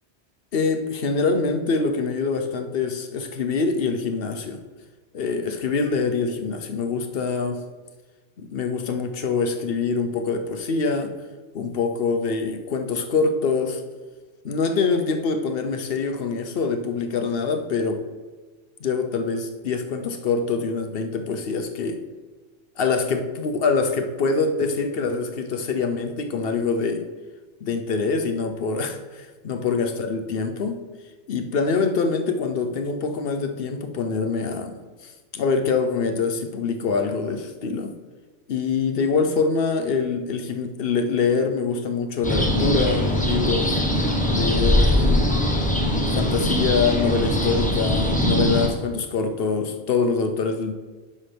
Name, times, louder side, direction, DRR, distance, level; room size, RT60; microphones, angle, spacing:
voice 1, 0.5-4.6 5.1-7.6 8.4-11.1 11.5-13.8 14.4-18.0 18.8-22.0 22.8-27.1 27.6-30.8 31.3-34.8 35.0-37.9 38.5-43.8 44.3-45.4 46.1-50.7, left 4 dB, 60° left, 6 dB, 0.9 m, -24 dB
sound 1, 42.2-48.7, left 1 dB, 5° left, 1.1 m, -21 dB
9.9 x 6.3 x 3.4 m, 1.3 s
omnidirectional pair, 1.2 m